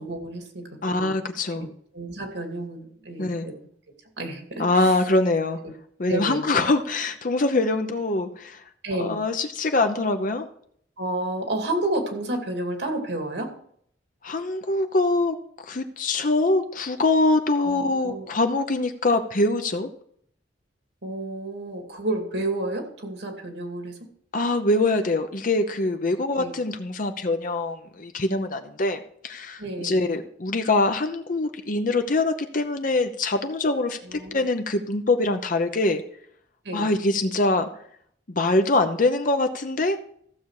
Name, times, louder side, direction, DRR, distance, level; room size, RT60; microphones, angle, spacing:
voice 1, 0.0-0.7 1.0-1.2 1.5-1.7 1.9-3.5 4.2-5.0 5.6-5.7 6.1-6.4 8.8-9.2 11.0-13.5 17.6-18.3 21.0-24.0 26.3-26.5 29.6-30.0 34.0-34.5 36.6-36.9, right 1 dB, 80° right, 3 dB, 2.6 m, -30 dB
voice 2, 0.8-1.7 3.2-3.5 4.6-5.6 6.0-8.6 9.0-10.5 14.2-15.3 15.7-19.9 24.3-36.0 36.7-37.7 38.3-40.0, left 2 dB, 50° left, 7 dB, 0.8 m, -24 dB
15.0 x 7.0 x 4.9 m, 0.65 s
head